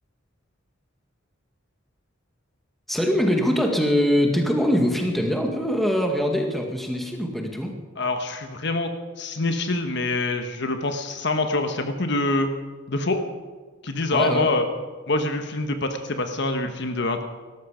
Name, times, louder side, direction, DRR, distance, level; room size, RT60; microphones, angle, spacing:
voice 1, 2.9-7.7 14.1-14.5, equal, ahead, 2 dB, 1.9 m, -23 dB
voice 2, 8.0-8.9 9.2-12.5 12.9-13.2 13.8-14.6 15.1-17.2, left 2 dB, 60° left, 6 dB, 1.2 m, -25 dB
18.0 x 13.5 x 5.1 m, 1.4 s
head